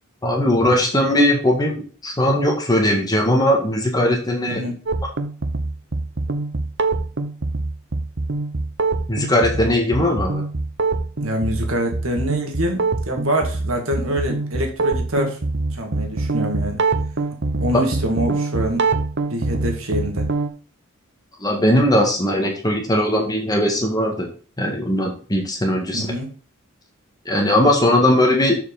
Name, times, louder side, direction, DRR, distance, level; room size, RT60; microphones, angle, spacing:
voice 1, 0.2-4.6 9.1-10.4 21.4-24.3 24.6-26.1 27.2-28.6, left 1 dB, 20° left, 1 dB, 1.7 m, -19 dB
sound 1, 4.9-20.5, right 3 dB, 55° right, 0.9 m, -24 dB
voice 2, 11.2-15.4 15.7-16.8 17.6-18.9 19.3-20.3 25.9-26.3, right 1 dB, 75° right, 3 dB, 1.9 m, -25 dB
7.1 x 6.4 x 3.9 m, 0.39 s
head